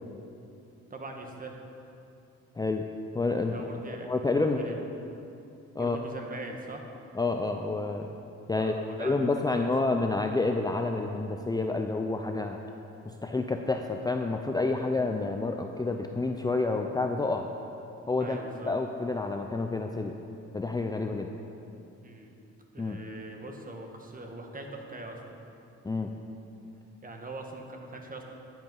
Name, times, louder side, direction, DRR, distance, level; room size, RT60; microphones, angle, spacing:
voice 1, 0.9-1.6 3.4-4.8 5.8-6.8 8.5-9.7 18.2-18.7 22.0-22.3 22.7-25.4 27.0-28.2, right 2 dB, 30° right, 2 dB, 1.5 m, -42 dB
voice 2, 2.6-2.9 3.1-3.6 4.0-4.8 5.8-6.0 7.2-8.1 8.5-8.7 9.0-12.6 13.1-17.5 18.1-18.4 18.7-20.1 20.5-21.3 22.8-23.0 25.8-26.1, left 3 dB, 15° left, 4 dB, 0.5 m, -29 dB
10.5 x 8.0 x 5.4 m, 2.7 s
cardioid pair, 90°, 30 cm